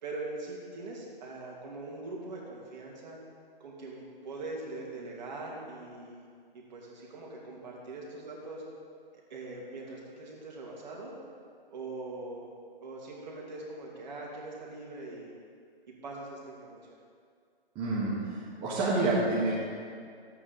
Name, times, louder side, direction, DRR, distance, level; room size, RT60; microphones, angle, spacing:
voice 1, 0.0-3.2 3.6-6.3 6.5-8.6 9.3-11.1 11.7-12.5 12.8-15.3 16.0-17.0, right 2 dB, 45° right, -2 dB, 2.5 m, -42 dB
voice 2, 17.7-19.6, right 2 dB, 15° right, -8 dB, 1.4 m, -28 dB
13.0 x 8.4 x 3.9 m, 2.2 s
hypercardioid pair, 150°, 30 cm